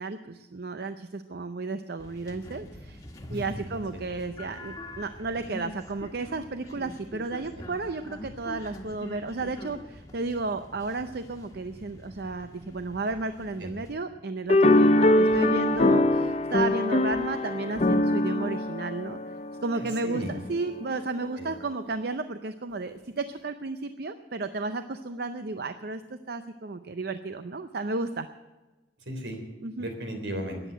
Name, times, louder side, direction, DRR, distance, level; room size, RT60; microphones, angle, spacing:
voice 1, 0.0-3.0 3.3-19.2 19.6-28.3 29.6-29.9, right 3 dB, 60° right, 10 dB, 0.6 m, -33 dB
sound 1, 2.0-14.0, left 1 dB, 20° left, 1.5 m, -45 dB
sound 2, 14.5-20.0, left 1 dB, 35° left, 0.7 m, -23 dB
voice 2, 19.8-20.3 21.4-21.5 29.1-29.4 29.8-30.6, equal, 80° right, 5 dB, 3.6 m, -36 dB
14.0 x 10.0 x 9.2 m, 1.1 s
head